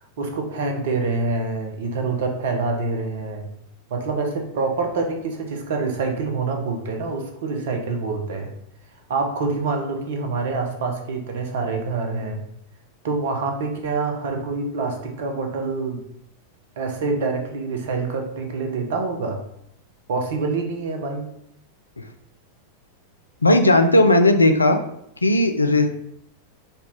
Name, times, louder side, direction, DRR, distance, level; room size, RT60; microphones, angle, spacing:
voice 1, 0.2-3.5 3.9-8.5 9.1-12.4 13.0-16.0 16.8-19.4 20.1-21.3, right 3 dB, 55° right, 3 dB, 0.7 m, -26 dB
voice 2, 23.4-24.8 25.2-25.9, left 2 dB, 80° left, 7 dB, 0.3 m, -16 dB
4.0 x 2.3 x 3.4 m, 0.74 s
figure-of-eight pair, 90°, 0 cm